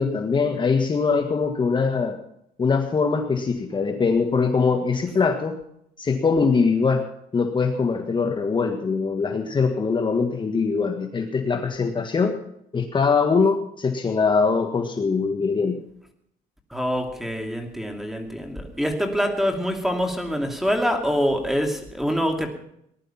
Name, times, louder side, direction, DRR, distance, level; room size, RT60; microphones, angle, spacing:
voice 1, 0.0-2.2 2.6-5.6 6.0-7.0 7.3-12.4 12.7-15.8, left 4 dB, 30° left, 4 dB, 1.7 m, -22 dB
voice 2, 16.7-22.5, equal, ahead, 4 dB, 2.7 m, -25 dB
19.5 x 11.5 x 5.8 m, 0.73 s
cardioid pair, 110°, 17 cm